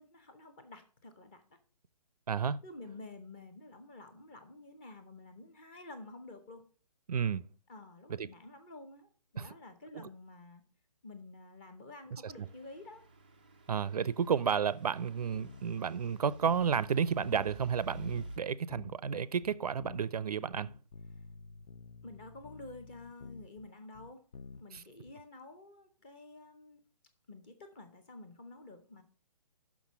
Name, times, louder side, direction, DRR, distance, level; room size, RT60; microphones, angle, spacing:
voice 1, 0.0-1.4 2.6-6.6 7.7-10.6 11.0-13.1 22.0-24.2 24.6-26.8 27.3-29.0, left 2 dB, 15° left, 0.7 m, -50 dB
voice 2, 2.3-2.6 7.1-7.5 8.1-8.3 9.4-9.5 12.1-12.3 13.7-20.7 24.7-24.8, right 7 dB, 65° right, 0.5 m, -32 dB
Truck / Idling, 12.3-18.4, right 2 dB, 15° right, 0.4 m, -50 dB
sound 1, 15.3-15.8 16.0-16.1 16.4-16.9 17.2-18.4 18.7-20.2 20.5-25.1, left 5 dB, 60° left, 0.6 m, -50 dB
6.1 x 6.0 x 7.2 m
hypercardioid pair, 170°, 21 cm